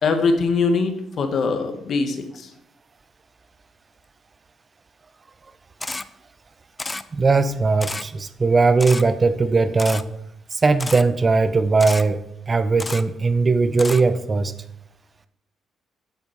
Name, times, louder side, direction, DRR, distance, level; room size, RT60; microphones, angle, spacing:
voice 1, 0.0-2.5, left 4 dB, 60° left, 6 dB, 1.4 m, -22 dB
Camera, 5.8-6.0 6.8-7.0 7.8-8.0 8.8-9.0 9.8-10.0 10.8-11.0 11.8-12.0 12.8-13.0 13.8-14.0, left 2 dB, 20° left, 0.5 m, -30 dB
voice 2, 7.1-10.1 10.5-14.5, right 4 dB, 30° right, 12 dB, 0.6 m, -19 dB
8.1 x 7.1 x 4.6 m, 0.77 s
cardioid pair, 90°, 0 cm